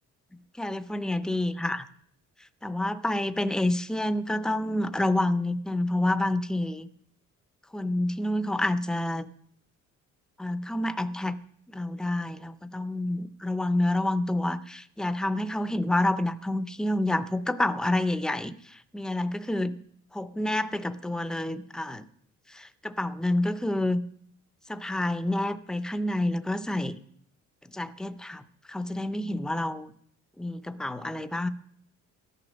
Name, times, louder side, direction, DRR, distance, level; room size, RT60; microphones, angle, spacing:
voice 1, 0.6-1.9 2.6-6.9 7.7-9.3 10.4-11.4 11.7-19.7 20.1-22.1 22.5-24.0 24.7-27.0 27.7-28.4 28.7-29.9 30.4-31.5, left 1 dB, ahead, 13 dB, 0.5 m, -28 dB
14.0 x 11.0 x 6.3 m, 0.65 s
cardioid pair, 160°, 30 cm